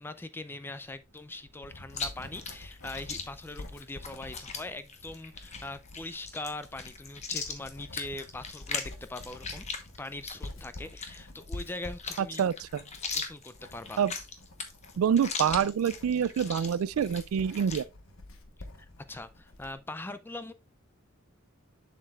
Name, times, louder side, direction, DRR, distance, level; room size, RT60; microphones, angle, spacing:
voice 1, 0.0-9.7 10.0-12.5 13.1-14.0 18.8-20.5, left 2 dB, 10° left, 0.4 m, -41 dB
Writing, 1.1-19.8, left 2 dB, 80° left, 1.1 m, -48 dB
Chewing mastication, 1.9-17.8, left 5 dB, 35° left, 1.0 m, -40 dB
voice 2, 12.2-12.5 14.0-14.1 15.0-17.8, right 8 dB, 85° right, 0.3 m, -26 dB
7.4 x 6.6 x 2.4 m
head